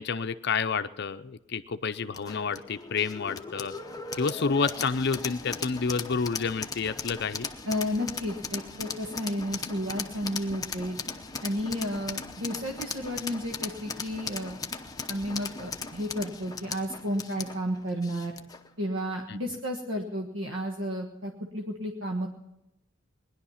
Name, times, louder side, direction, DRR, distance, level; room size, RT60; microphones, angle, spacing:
voice 1, 0.0-3.7 4.1-7.5 19.3-19.4, left 5 dB, 55° left, 10 dB, 0.6 m, -29 dB
sound 1, 2.1-18.7, left 5 dB, 20° left, 0.8 m, -38 dB
voice 2, 7.7-11.0 11.4-14.6 15.1-18.3 18.8-22.3, equal, 75° right, 2 dB, 1.5 m, -32 dB
19.5 x 11.0 x 5.7 m, 0.86 s
head